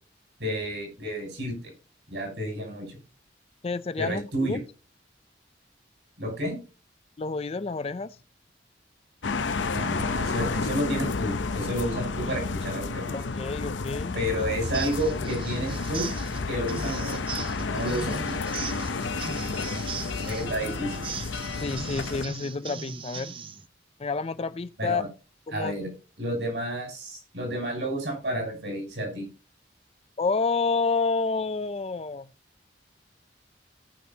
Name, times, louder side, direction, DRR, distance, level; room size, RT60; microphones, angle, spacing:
voice 1, 0.4-1.7 2.1-3.0 4.0-4.6 6.2-6.6 9.7-13.2 14.1-16.1 16.5-17.2 17.6-18.4 20.2-21.0 24.8-25.1 25.5-25.9 26.2-29.3, equal, 70° right, 6.0 m, -31 dB
voice 2, 3.6-4.6 7.2-8.2 12.2-12.4 13.1-14.2 20.4-20.5 21.5-23.4 24.0-25.0 25.5-25.9 30.2-32.3, left 4 dB, 35° left, 0.4 m, -29 dB
sound 1, 9.2-22.3, left 4 dB, 85° left, 0.7 m, -31 dB
sound 2, 14.6-23.7, right 5 dB, 30° right, 0.6 m, -39 dB
18.0 x 6.2 x 2.8 m
head